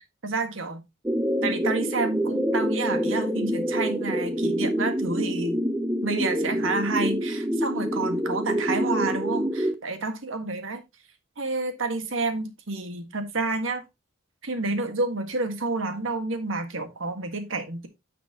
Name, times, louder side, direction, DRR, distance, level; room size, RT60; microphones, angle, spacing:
voice 1, 0.2-0.8 1.4-5.6 6.0-10.8 11.4-13.8 14.4-17.9, right 3 dB, 85° right, 1.6 m, -29 dB
sound 1, 1.1-9.7, equal, 10° right, 0.6 m, -26 dB
9.6 x 5.9 x 2.8 m
head